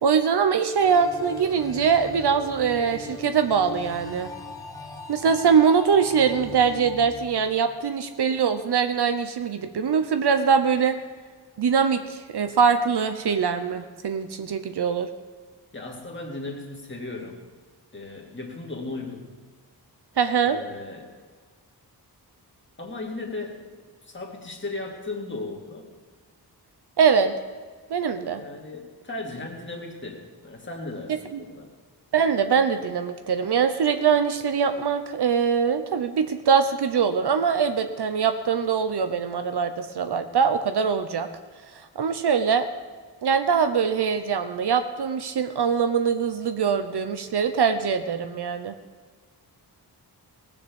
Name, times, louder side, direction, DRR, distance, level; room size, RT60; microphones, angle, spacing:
voice 1, 0.0-4.3 5.1-11.0 11.6-15.1 20.2-20.6 27.0-27.3 27.9-28.4 31.3-31.4 32.1-41.3 42.0-42.7 43.2-48.7, right 6 dB, 75° right, 8 dB, 0.9 m, -22 dB
sound 1, 0.8-7.8, left 2 dB, 10° left, 1.2 m, -40 dB
voice 2, 15.7-17.4 17.9-19.3 20.4-21.1 22.8-23.6 24.0-25.9 28.4-31.7, left 2 dB, 30° left, 0 dB, 2.5 m, -36 dB
19.0 x 7.2 x 7.1 m, 1.5 s
wide cardioid pair, 140°, 40 cm